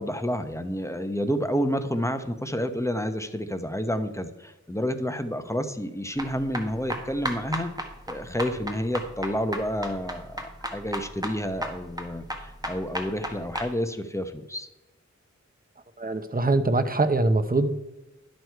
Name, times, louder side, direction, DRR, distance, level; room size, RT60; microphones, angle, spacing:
voice 1, 0.0-7.7 8.1-14.7, equal, 10° left, 8 dB, 0.9 m, -29 dB
sound 1, 6.2-13.7, right 1 dB, 15° right, 1.4 m, -34 dB
voice 2, 16.0-17.7, right 2 dB, 30° right, 10 dB, 0.8 m, -23 dB
11.0 x 6.4 x 4.6 m, 1.0 s
wide cardioid pair, 60°, 29 cm